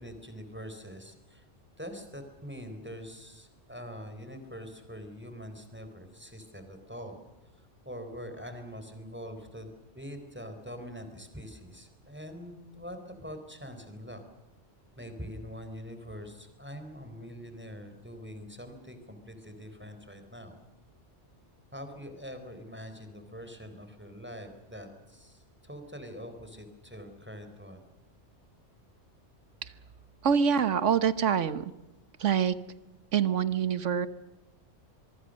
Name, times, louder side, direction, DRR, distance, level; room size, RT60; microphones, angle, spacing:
voice 1, 0.0-1.4 1.8-7.2 7.9-14.2 15.0-20.6 21.7-27.8, equal, 10° right, 7 dB, 4.0 m, -44 dB
voice 2, 30.2-31.7 32.2-32.6 33.1-34.1, right 7 dB, 80° right, 14 dB, 1.4 m, -25 dB
25.0 x 23.5 x 6.4 m, 1.0 s
omnidirectional pair, 1.2 m